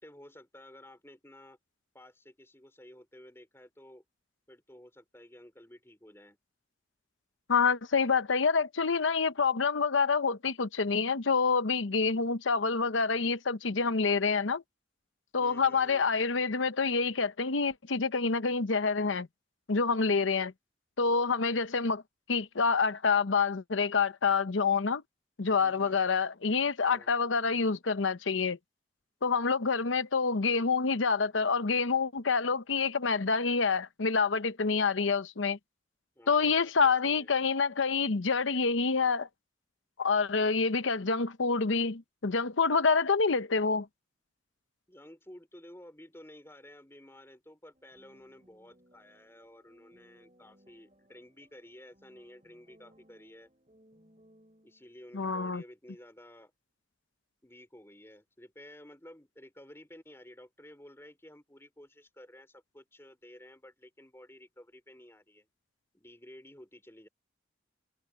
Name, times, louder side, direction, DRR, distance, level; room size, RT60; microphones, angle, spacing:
voice 1, 0.0-1.6 1.9-4.0 4.5-6.4 15.4-16.1 25.6-26.0 26.8-27.1 36.1-37.3 44.9-53.5 54.6-56.5 57.4-65.5 65.9-67.1, left 1 dB, 15° left, 4.4 m, -53 dB
voice 2, 7.5-14.6 15.3-19.3 19.7-20.5 21.0-22.0 22.3-25.0 25.4-28.6 29.2-35.6 36.3-39.3 40.0-43.9 55.1-55.6, left 5 dB, 85° left, 0.9 m, -27 dB
sound 1, 47.7-55.0, equal, 35° right, 5.8 m, -64 dB
head